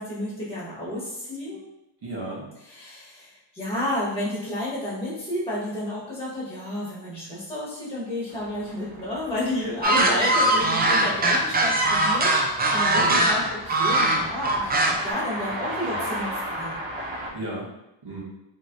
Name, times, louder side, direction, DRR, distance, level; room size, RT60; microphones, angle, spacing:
voice 1, 0.0-1.6 2.6-16.8, left 1 dB, 10° left, -9 dB, 1.1 m, -31 dB
voice 2, 2.0-2.5 9.6-10.1 10.5-10.6 12.9-13.2 17.3-17.7 18.0-18.2, right 2 dB, 60° right, -5 dB, 1.1 m, -33 dB
sound 1, 8.3-17.3, right 1 dB, 85° right, 0.8 m, -36 dB
sound 2, 9.8-15.1, right 1 dB, 25° right, 0.3 m, -21 dB
2.9 x 2.8 x 2.5 m, 0.87 s
wide cardioid pair, 110°, 45 cm